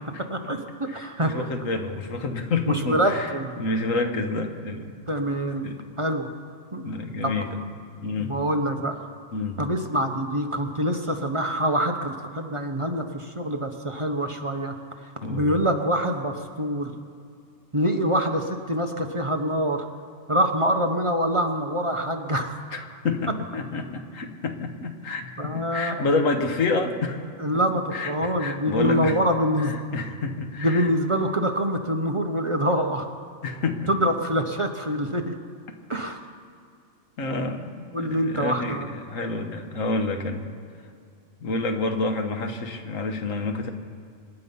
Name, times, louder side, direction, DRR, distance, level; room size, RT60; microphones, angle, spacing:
voice 1, 0.3-1.5 2.7-3.5 5.1-5.7 6.0-6.3 6.7-6.9 7.2-7.3 8.2-9.0 9.6-16.9 17.7-19.9 20.3-22.6 25.4-26.1 27.4-29.7 30.6-33.1 33.9-35.4 35.9-36.3 37.9-38.9, equal, 25° right, 4 dB, 0.9 m, -25 dB
voice 2, 1.0-3.3 3.6-4.9 5.6-5.8 6.8-7.5 8.0-8.3 9.3-9.6 15.2-15.5 22.7-27.2 27.9-29.1 29.9-30.9 33.4-34.1 37.2-38.8 39.1-40.5 41.4-43.7, left 3 dB, 85° left, 5 dB, 1.7 m, -28 dB
26.0 x 10.0 x 5.5 m, 2.4 s
omnidirectional pair, 1.3 m